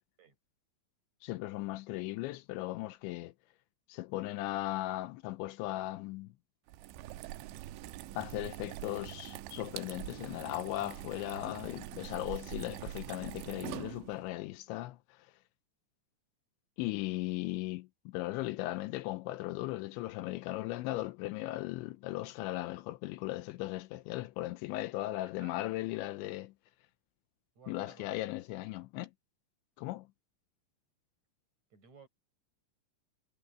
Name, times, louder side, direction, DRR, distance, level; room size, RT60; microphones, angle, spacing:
voice 1, 1.2-3.3 3.9-6.3 8.2-15.0 16.8-26.5 27.7-29.1 29.8-30.1, left 17 dB, 80° left, 2.9 m, -37 dB
sound 1, 6.7-14.3, right 14 dB, 80° right, 3.1 m, -44 dB
voice 2, 25.2-25.6 27.6-28.1 31.7-32.1, right 6 dB, 35° right, 8.7 m, -57 dB
omnidirectional pair, 5.5 m